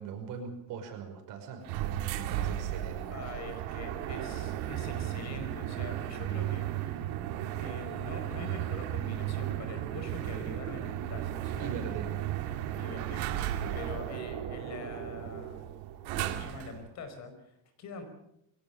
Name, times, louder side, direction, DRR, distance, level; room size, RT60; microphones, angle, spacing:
voice 1, 0.0-1.7 2.1-3.2 11.6-12.1 13.6-13.8, right 6 dB, 60° right, 5 dB, 5.6 m, -40 dB
sound 1, 1.6-16.8, right 12 dB, 85° right, 2.4 m, -35 dB
voice 2, 3.1-7.0 7.6-11.7 12.8-13.3 13.7-15.7 16.1-18.0, left 3 dB, 45° left, 8 dB, 5.0 m, -44 dB
22.5 x 17.5 x 7.0 m, 0.76 s
cardioid pair, 150°, 36 cm